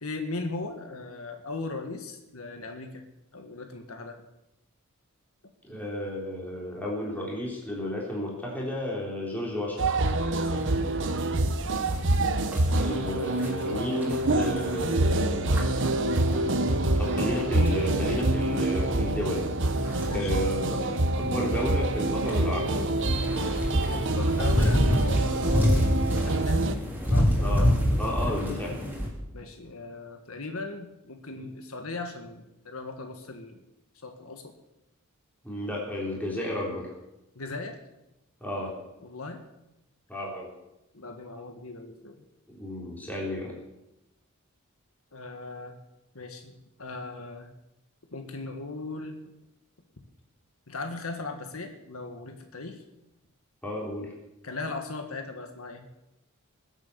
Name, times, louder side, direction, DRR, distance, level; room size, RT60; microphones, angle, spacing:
voice 1, 0.0-3.1 3.3-4.2 10.5-10.7 20.1-20.4 20.9-21.0 23.9-26.7 27.1-28.3 29.3-33.6 34.0-34.5 37.4-37.8 39.0-39.5 40.9-42.3 45.1-45.8 46.2-47.5 48.1-49.2 50.7-52.8 54.4-55.8, left 3 dB, 80° left, 6 dB, 1.7 m, -38 dB
voice 2, 5.6-9.9 12.8-15.7 17.0-19.5 20.1-20.8 21.1-22.7 27.4-27.7 28.0-28.8 35.4-36.9 38.4-38.7 40.1-40.5 42.5-43.5 53.6-54.1, left 1 dB, 10° left, -3 dB, 3.7 m, -32 dB
sound 1, 9.8-26.7, right 2 dB, 60° right, 1.1 m, -26 dB
sound 2, 10.6-29.1, equal, 10° right, 3.8 m, -30 dB
20.5 x 8.3 x 7.0 m, 0.91 s
head